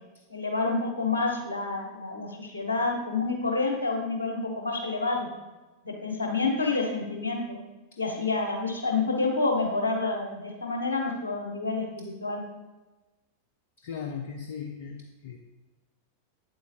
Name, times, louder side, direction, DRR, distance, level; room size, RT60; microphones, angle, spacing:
voice 1, 0.3-5.3 5.8-7.6 8.0-12.4, left 3 dB, 75° left, 2 dB, 1.3 m, -28 dB
voice 2, 13.8-15.4, left 6 dB, 55° left, 4 dB, 0.5 m, -37 dB
8.4 x 7.6 x 2.6 m, 1.1 s
figure-of-eight pair, 90°, 0 cm